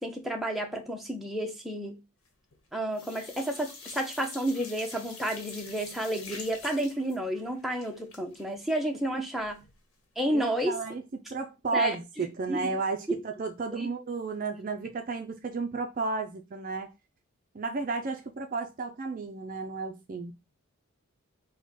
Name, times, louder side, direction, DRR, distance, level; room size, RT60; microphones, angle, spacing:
voice 1, 0.0-2.0 2.7-9.6 10.2-10.8 11.7-11.9 12.5-12.7 13.1-13.2 13.8-13.9, right 1 dB, ahead, 0.6 m, -31 dB
sound 1, 2.3-2.7 2.9-9.8 10.1-10.2 10.5-10.6, left 4 dB, 65° left, 1.1 m, -46 dB
voice 2, 10.3-16.9 17.5-20.3, right 4 dB, 40° right, 0.4 m, -33 dB
4.1 x 2.2 x 4.5 m
head